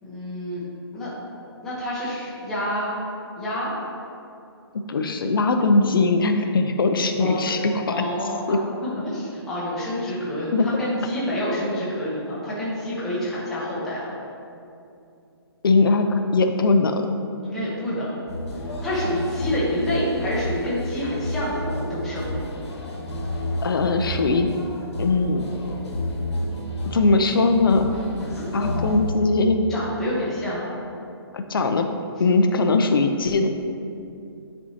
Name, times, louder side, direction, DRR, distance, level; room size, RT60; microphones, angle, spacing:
voice 1, 0.0-0.6 0.9-1.1 1.6-3.0 3.4-3.7 7.2-7.4 7.9-8.6 9.0-14.1 17.4-18.2 18.6-22.4 28.2-28.5 29.7-30.7, equal, 5° left, -10 dB, 0.8 m, -28 dB
voice 2, 4.9-8.0 8.5-8.6 10.5-10.7 15.6-17.0 23.6-24.5 25.0-25.4 26.8-27.9 28.5-29.6 31.3-31.9 32.2-33.5, left 3 dB, 55° left, 6 dB, 0.5 m, -20 dB
sound 1, 18.3-29.1, left 1 dB, 85° left, 1.4 m, -30 dB
9.9 x 4.5 x 2.8 m, 2.6 s
hypercardioid pair, 175°, 14 cm